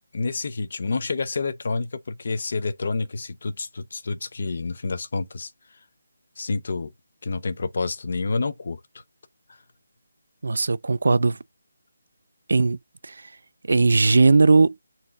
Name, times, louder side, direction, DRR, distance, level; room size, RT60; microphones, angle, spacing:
voice 1, 0.1-5.5 6.4-6.9 7.2-8.8, left 3 dB, 45° left, 0.6 m, -28 dB
voice 2, 10.4-11.4 12.5-12.8 13.0-13.2 13.7-14.8, right 3 dB, 60° right, 0.3 m, -18 dB
4.1 x 2.4 x 3.9 m
hypercardioid pair, 175°, 0 cm